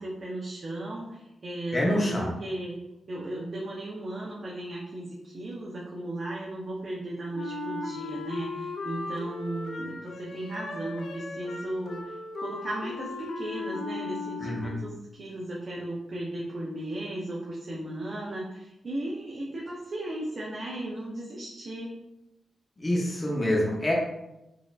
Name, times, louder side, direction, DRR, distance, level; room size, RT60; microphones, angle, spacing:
voice 1, 0.0-2.8 3.1-21.9, right 1 dB, 45° right, -4 dB, 0.6 m, -36 dB
voice 2, 1.7-2.3 14.4-14.8 22.8-23.9, left 1 dB, 20° left, -3 dB, 0.7 m, -26 dB
Wind instrument woodwind instrument, 7.3-14.9, left 3 dB, 70° left, 0.4 m, -37 dB
4.0 x 2.5 x 2.4 m, 0.92 s
cardioid pair, 100°, 0 cm